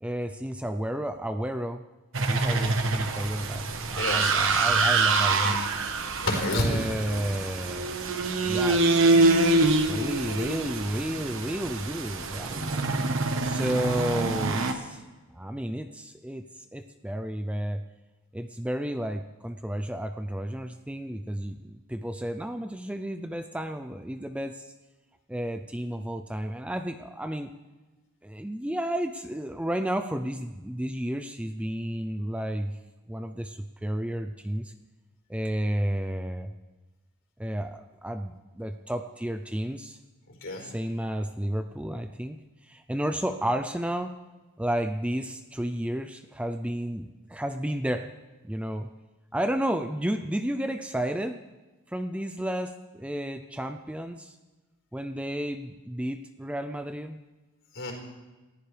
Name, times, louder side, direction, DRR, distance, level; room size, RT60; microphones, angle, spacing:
voice 1, 0.0-1.9 2.2-5.6 6.5-7.9 8.4-12.9 13.4-15.0 15.3-17.8 18.3-24.7 25.3-27.5 28.2-32.8 33.1-34.7 35.3-36.5 37.4-40.0 40.6-44.2 44.6-48.1 48.4-48.9 49.3-51.4 51.9-54.4 54.9-57.2, right 1 dB, 5° right, 8 dB, 0.4 m, -32 dB
sound 1, 2.1-14.7, right 3 dB, 60° right, 1.3 m, -25 dB
voice 2, 4.0-4.6 6.2-7.2 40.3-40.7 57.7-57.9, left 1 dB, 60° left, 1 dB, 4.4 m, -30 dB
28.5 x 15.0 x 3.4 m, 1.2 s
head